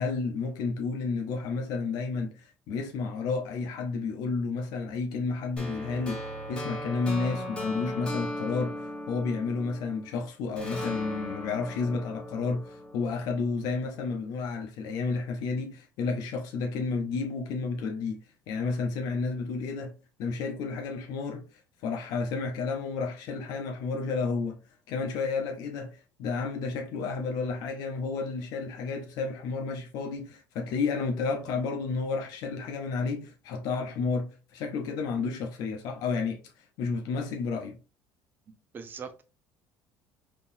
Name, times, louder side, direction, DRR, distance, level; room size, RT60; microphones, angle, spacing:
voice 1, 0.0-6.2 6.5-19.9 20.2-21.4 21.8-24.6 24.9-36.4 36.8-37.8, left 4 dB, 70° left, 0.7 m, -31 dB
sound 1, 5.6-10.1 10.6-13.6, left 1 dB, 15° left, 1.0 m, -37 dB
voice 2, 38.5-39.2, right 6 dB, 30° right, 0.6 m, -42 dB
3.7 x 2.9 x 2.6 m
cardioid pair, 125°, 7 cm